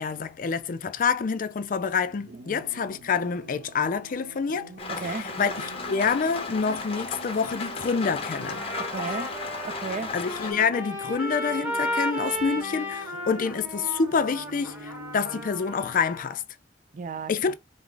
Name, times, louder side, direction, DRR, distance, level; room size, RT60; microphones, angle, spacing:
voice 1, 0.0-4.7 5.0-8.6 10.1-16.4 17.3-17.5, left 5 dB, 50° left, 0.4 m, -27 dB
sound 1, 2.0-15.4, right 4 dB, 80° right, 0.8 m, -45 dB
Rain, 4.8-10.5, left 4 dB, 35° left, 0.9 m, -35 dB
voice 2, 4.9-5.3 8.8-9.4 9.6-10.2 16.9-17.5, right 4 dB, 45° right, 0.5 m, -34 dB
Trumpet, 8.3-16.4, left 1 dB, 10° right, 1.3 m, -34 dB
4.7 x 2.0 x 3.8 m
head